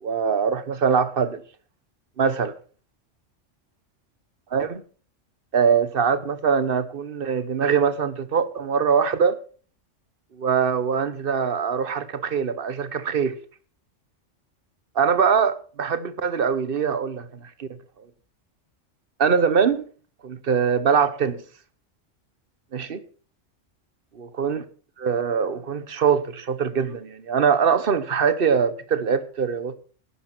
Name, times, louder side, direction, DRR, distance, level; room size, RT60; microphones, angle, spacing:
voice 1, 0.0-1.4 2.2-2.5 4.5-4.8 5.5-9.4 10.3-13.4 14.9-17.7 19.2-19.8 20.2-21.4 22.7-23.0 24.4-24.6 25.0-29.8, right 6 dB, 50° right, 1.2 m, -22 dB
12.0 x 10.0 x 6.0 m
omnidirectional pair, 1.3 m